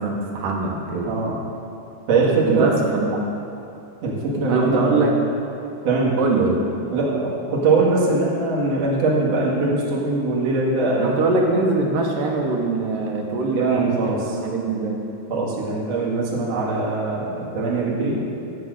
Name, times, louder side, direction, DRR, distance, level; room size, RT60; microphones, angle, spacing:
voice 1, 0.0-1.1 2.3-3.2 4.5-5.1 6.2-6.6 11.0-15.0, right 3 dB, 70° right, 0 dB, 2.7 m, -22 dB
voice 2, 1.0-1.4 2.1-2.7 4.0-5.1 5.8-6.2 6.9-11.1 13.5-14.2 15.3-18.2, right 3 dB, 50° right, -6 dB, 2.8 m, -22 dB
13.5 x 8.4 x 6.5 m, 2.8 s
omnidirectional pair, 4.3 m